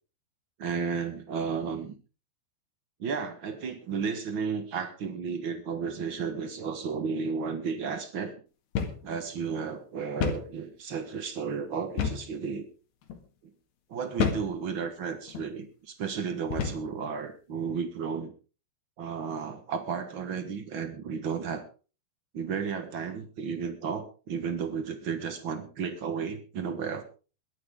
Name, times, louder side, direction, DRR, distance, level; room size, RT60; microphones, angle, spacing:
voice 1, 0.6-1.9 3.0-8.3 9.0-12.7 13.4-13.5 13.9-18.3 19.0-21.7 22.3-27.0, right 6 dB, 80° right, 8 dB, 1.1 m, -33 dB
sound 1, 8.8-9.1 9.4-9.5 10.2-10.5 12.0-12.3 13.0-13.2 14.2-14.5 15.3-15.5 16.5-16.9, left 7 dB, 90° left, 4.0 m, -29 dB
21.5 x 12.0 x 3.7 m, 0.35 s
omnidirectional pair, 4.6 m